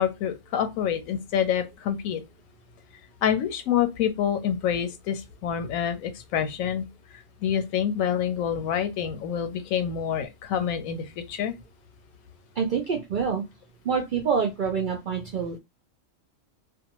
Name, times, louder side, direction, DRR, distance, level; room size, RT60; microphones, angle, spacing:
voice 1, 0.0-2.2 3.2-6.8 7.4-11.5, left 9 dB, 85° left, 1.0 m, -27 dB
voice 2, 12.6-13.4 13.8-15.6, right 6 dB, 65° right, 0.5 m, -26 dB
2.5 x 2.3 x 2.9 m
omnidirectional pair, 1.4 m